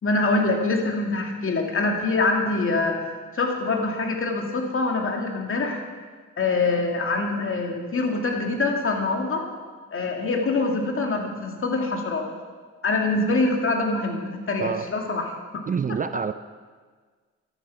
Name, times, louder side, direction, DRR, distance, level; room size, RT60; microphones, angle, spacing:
voice 1, 0.0-3.0 3.3-5.8 6.4-9.5 9.9-12.3 12.8-15.3, left 3 dB, 45° left, 2 dB, 2.4 m, -24 dB
voice 2, 15.7-16.3, right 6 dB, 30° right, 11 dB, 0.4 m, -26 dB
13.5 x 10.0 x 5.8 m, 1.5 s
cardioid pair, 90°, 30 cm